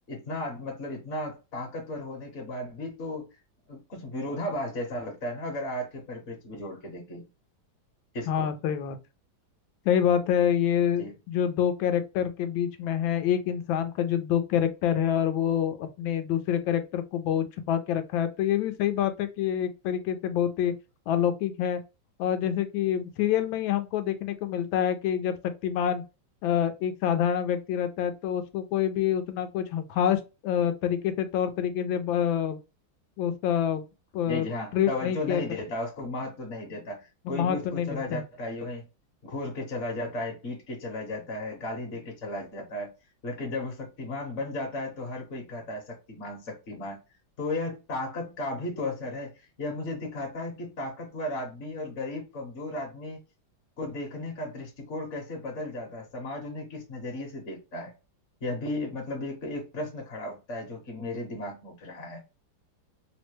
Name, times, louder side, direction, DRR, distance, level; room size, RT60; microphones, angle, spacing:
voice 1, 0.1-3.3 3.7-7.3 8.1-8.6 11.0-11.1 34.3-38.8 39.2-42.9 43.2-47.0 47.4-53.2 53.8-57.9 58.4-62.2, left 1 dB, 45° left, 1.1 m, -35 dB
voice 2, 8.3-9.0 9.8-20.7 21.1-21.8 22.2-25.3 25.6-26.0 26.4-32.6 33.2-33.8 34.1-34.5 34.7-35.4 37.2-38.2, left 9 dB, 80° left, 1.3 m, -27 dB
3.4 x 2.1 x 3.1 m
omnidirectional pair, 2.1 m